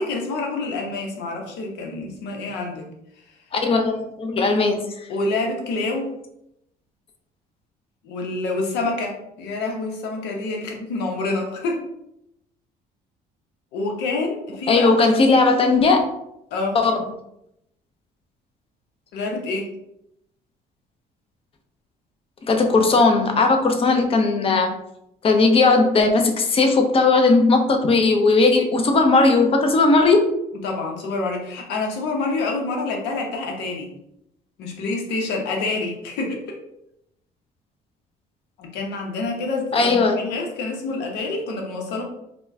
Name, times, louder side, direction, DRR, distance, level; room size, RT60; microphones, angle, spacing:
voice 1, 0.0-2.9 5.1-6.1 8.0-11.8 13.7-15.0 16.5-16.8 19.1-19.7 30.6-33.9 34.6-36.6 38.6-42.0, left 3 dB, 85° left, 1 dB, 0.9 m, -27 dB
voice 2, 3.5-4.9 14.7-16.0 16.7-17.0 22.5-24.7 25.2-30.3 39.7-40.2, left 3 dB, 35° left, 4 dB, 0.6 m, -17 dB
4.3 x 2.2 x 2.6 m, 0.80 s
cardioid pair, 110°, 17 cm